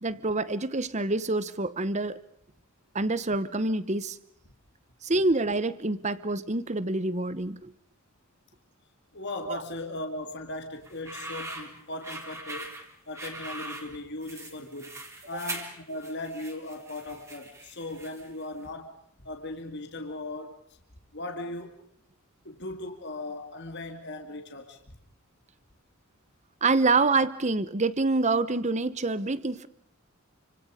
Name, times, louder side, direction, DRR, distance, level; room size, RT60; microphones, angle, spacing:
voice 1, 0.0-2.2 2.9-4.2 5.0-7.7 9.5-9.6 15.3-15.4 26.6-29.7, right 3 dB, 30° right, 1.1 m, -26 dB
voice 2, 9.1-12.8 13.1-15.0 15.3-18.9 19.2-20.6 21.1-21.7 22.4-24.8, left 2 dB, 55° left, 2.6 m, -38 dB
sound 1, 10.8-18.4, right 2 dB, 15° right, 3.6 m, -41 dB
29.5 x 25.5 x 5.2 m
head